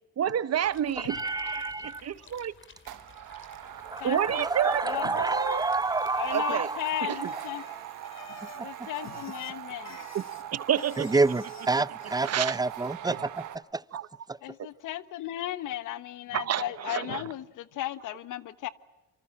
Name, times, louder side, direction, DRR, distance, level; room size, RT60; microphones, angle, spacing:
voice 1, 0.2-2.5 4.0-5.6 6.3-6.7 7.0-7.3 10.1-10.2 10.5-11.2 12.0-12.6 13.1-13.2 13.9-14.1 14.6-14.7 16.3-17.2, right 10 dB, 55° right, 1.2 m, -30 dB
sound 1, 0.6-6.3, left 5 dB, 40° left, 3.4 m, -55 dB
voice 2, 1.1-2.0 3.9-7.8 8.6-8.7 11.0-13.4 13.7-13.8, right 3 dB, 15° right, 0.8 m, -29 dB
sound 2, 2.0-2.3 2.8-13.6, right 12 dB, 80° right, 1.7 m, -42 dB
Bicycle, 3.6-13.1, left 7 dB, 60° left, 3.1 m, -53 dB
voice 3, 4.0-4.5 4.8-5.1 6.2-7.6 8.6-10.1 13.1-13.2 14.4-18.7, left 13 dB, 90° left, 1.3 m, -35 dB
27.5 x 26.0 x 7.5 m
cardioid pair, 90°, 30 cm